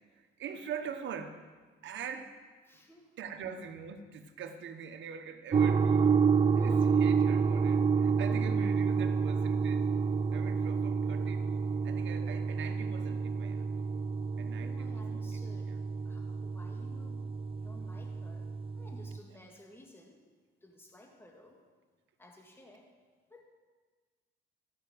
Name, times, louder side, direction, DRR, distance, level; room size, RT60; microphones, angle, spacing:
voice 1, 0.1-1.5 1.8-2.3 3.2-6.2 6.6-9.9 10.3-13.7 14.4-15.2 15.7-15.8, right 6 dB, 70° right, 7 dB, 1.1 m, -43 dB
voice 2, 2.7-3.1 6.5-7.1 8.3-8.4 14.6-17.3 17.6-18.5 18.8-20.2 20.6-21.6 22.2-22.9 23.3-23.4, left 1 dB, 10° left, 0 dB, 1.9 m, -54 dB
sound 1, 5.5-19.2, right 5 dB, 30° right, 0.4 m, -29 dB
13.5 x 5.8 x 7.8 m, 1.4 s
cardioid pair, 90°, 20 cm